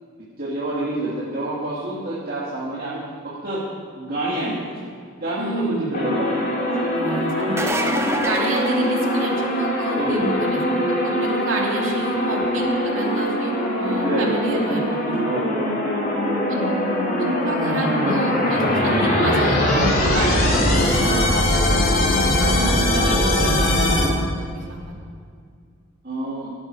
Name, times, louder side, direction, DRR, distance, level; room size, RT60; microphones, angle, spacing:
voice 1, 0.4-3.0 3.2-3.6 3.9-4.9 5.2-7.0 8.0-8.2 9.9-10.3 11.0-11.3 14.0-14.7 15.2-16.6 26.0-26.5, right 1 dB, 45° right, -8 dB, 2.6 m, -28 dB
voice 2, 5.4-5.9 6.9-7.8 8.2-15.2 15.6-15.7 16.5-16.6 17.2-20.6 21.0-22.1 22.4-25.0, right 2 dB, 70° right, -1 dB, 2.7 m, -29 dB
sound 1, 5.9-24.1, left 1 dB, 45° left, 3.1 m, -21 dB
sound 2, 7.4-9.6 15.2-15.3 17.1-17.2, right 2 dB, 15° right, 0.8 m, -28 dB
17.5 x 12.0 x 4.9 m, 2.1 s
head